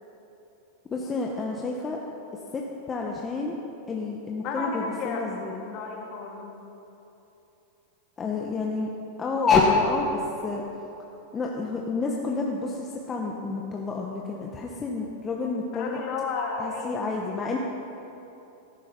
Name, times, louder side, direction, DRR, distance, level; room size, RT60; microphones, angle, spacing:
voice 1, 0.9-2.0 2.5-2.6 2.9-3.6 3.9-5.6 8.2-8.9 9.2-10.6 11.3-16.0 16.6-17.6, left 4 dB, 20° left, -1 dB, 1.2 m, -28 dB
voice 2, 4.4-5.3 5.6-6.6 15.7-17.4, left 5 dB, 45° left, -1 dB, 3.0 m, -33 dB
17.0 x 10.0 x 5.4 m, 3.0 s
hypercardioid pair, 120°, 0 cm